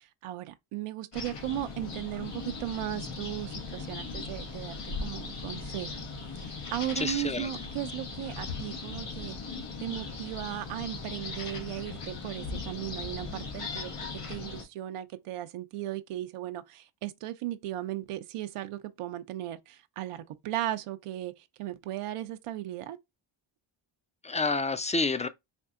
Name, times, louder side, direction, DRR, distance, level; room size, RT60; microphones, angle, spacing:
voice 1, 0.0-6.1 6.4-9.4 9.8-13.9 14.3-23.0, right 13 dB, 85° right, 0.6 m, -36 dB
sound 1, 1.1-14.6, left 4 dB, 90° left, 1.3 m, -38 dB
voice 2, 7.0-7.5 24.2-25.3, left 3 dB, 15° left, 0.4 m, -29 dB
4.4 x 2.6 x 2.4 m
cardioid pair, 75°, 50 cm